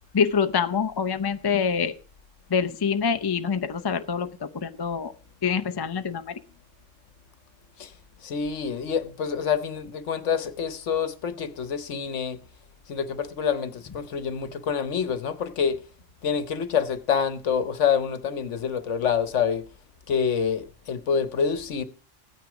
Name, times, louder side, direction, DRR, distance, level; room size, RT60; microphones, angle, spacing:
voice 1, 0.1-1.9 2.5-5.1 5.4-6.4, left 6 dB, 30° left, 0.4 m, -25 dB
voice 2, 8.2-12.4 12.9-15.8 16.2-19.6 20.1-21.8, left 7 dB, 70° left, 1.3 m, -27 dB
14.0 x 9.4 x 4.9 m
omnidirectional pair, 1.3 m